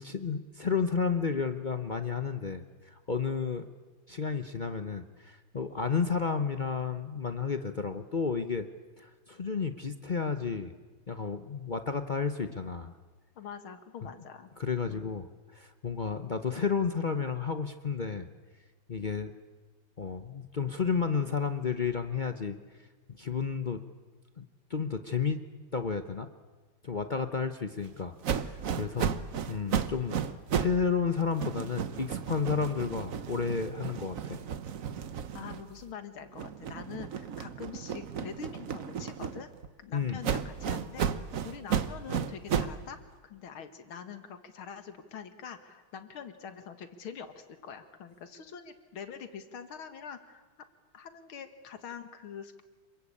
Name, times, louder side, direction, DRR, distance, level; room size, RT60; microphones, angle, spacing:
voice 1, 0.0-3.7 4.1-8.7 9.0-10.7 11.1-12.9 14.6-15.3 15.5-18.3 18.9-19.3 20.0-22.6 23.2-23.8 24.4-24.5 24.7-26.3 26.8-29.1 29.5-30.2 30.5-34.4 39.9-40.2, left 5 dB, 55° left, 8 dB, 0.5 m, -32 dB
voice 2, 13.4-14.5 14.9-15.1 29.0-29.3 35.3-39.5 39.8-41.1 41.4-43.0 43.2-50.4 50.9-52.6, left 7 dB, 85° left, 9 dB, 2.5 m, -44 dB
sound 1, 28.2-30.8 31.1-35.9 36.3-39.7 40.2-42.8, right 7 dB, 50° right, 1.1 m, -34 dB
27.0 x 23.0 x 8.6 m, 1.3 s
omnidirectional pair, 2.2 m